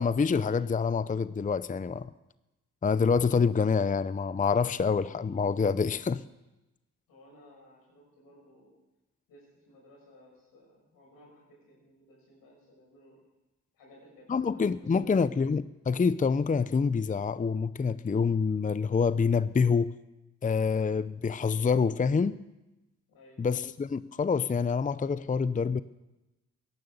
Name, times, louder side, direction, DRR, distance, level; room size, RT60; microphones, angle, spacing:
voice 1, 0.0-2.1 2.8-6.2 14.3-19.9 20.4-22.4 23.4-25.8, left 5 dB, 25° left, 16 dB, 0.6 m, -26 dB
voice 2, 7.1-8.7 9.3-13.2 13.7-15.4 23.1-23.5, left 1 dB, 90° left, -2 dB, 6.2 m, -57 dB
16.5 x 10.5 x 7.1 m, 1.0 s
supercardioid pair, 50°, 34 cm